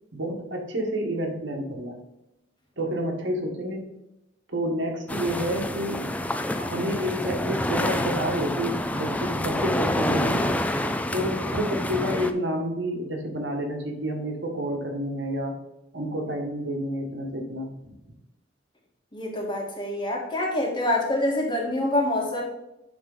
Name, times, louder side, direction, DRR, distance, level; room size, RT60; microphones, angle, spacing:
voice 1, 0.1-2.0 2.8-3.8 4.5-6.0 6.6-10.6 11.1-15.6 15.9-17.9, equal, 75° right, 2 dB, 1.6 m, -29 dB
sound 1, 5.1-12.3, left 1 dB, 10° left, 0.4 m, -27 dB
voice 2, 19.1-22.5, left 1 dB, 25° left, -1 dB, 1.8 m, -26 dB
10.5 x 3.6 x 3.9 m, 0.91 s
head